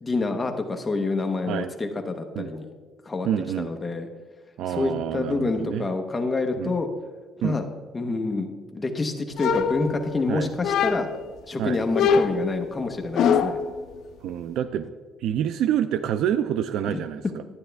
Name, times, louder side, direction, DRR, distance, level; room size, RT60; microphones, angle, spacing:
voice 1, 0.0-2.7 3.0-3.3 3.6-4.1 4.7-6.9 7.4-7.6 7.9-11.1 11.5-13.6 16.9-17.0, left 3 dB, 15° left, 4 dB, 0.9 m, -27 dB
voice 2, 3.2-3.7 4.6-5.9 6.6-6.7 7.4-7.6 10.3-10.5 11.6-11.8 14.2-14.9 15.2-17.4, right 10 dB, 70° right, 12 dB, 0.3 m, -27 dB
sound 1, 9.4-10.2 10.6-11.3 11.9-13.7, left 6 dB, 60° left, 0.6 m, -23 dB
11.5 x 9.5 x 3.4 m, 1.4 s
cardioid pair, 165°, 0 cm